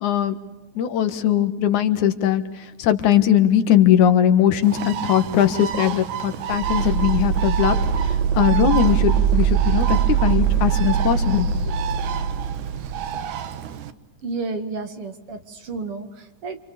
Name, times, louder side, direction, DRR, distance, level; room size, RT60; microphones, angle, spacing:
voice 1, 0.0-0.4 0.8-7.8 8.3-11.7, left 10 dB, 85° left, 10 dB, 2.9 m, -20 dB
Bird, 4.6-13.9, right 10 dB, 85° right, 2.7 m, -31 dB
sound 1, 6.5-13.1, right 8 dB, 65° right, 3.2 m, -22 dB
voice 2, 14.2-16.6, right 3 dB, 50° right, 8 dB, 2.7 m, -31 dB
29.0 x 26.5 x 7.1 m, 1.0 s
omnidirectional pair, 3.4 m